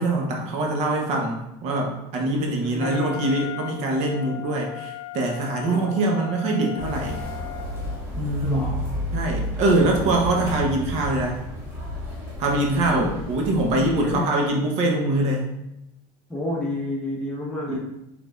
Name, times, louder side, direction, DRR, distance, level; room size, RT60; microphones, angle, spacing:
voice 1, 0.0-7.2 8.2-8.8 9.1-11.4 12.4-15.5 17.7-17.8, right 2 dB, 50° right, 1 dB, 0.7 m, -23 dB
voice 2, 2.2-3.3 5.6-6.2 8.4-8.9 12.9-13.1 13.8-14.3 16.3-17.8, left 2 dB, 10° left, -5 dB, 0.9 m, -30 dB
Wind instrument woodwind instrument, 2.8-8.1, left 14 dB, 80° left, 0.4 m, -37 dB
sound 1, 6.8-14.1, equal, 20° right, 1.1 m, -32 dB
4.8 x 3.5 x 2.3 m, 0.86 s
cardioid pair, 150°, 14 cm